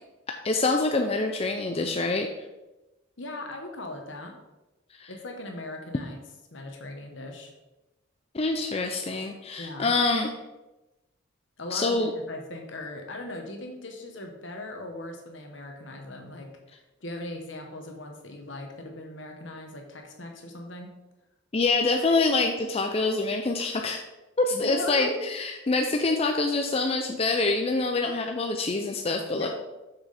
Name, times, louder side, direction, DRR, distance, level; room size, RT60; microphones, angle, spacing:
voice 1, 0.4-2.3 5.0-5.1 8.3-10.3 11.7-12.1 21.5-24.0 24.4-29.5, left 3 dB, 30° left, 3 dB, 0.5 m, -25 dB
voice 2, 3.2-4.4 5.1-6.2 6.5-7.5 9.6-9.9 11.6-16.5 17.0-20.9 24.5-25.2 29.3-29.5, left 2 dB, 70° left, 3 dB, 1.3 m, -38 dB
6.4 x 6.0 x 4.2 m, 1.0 s
head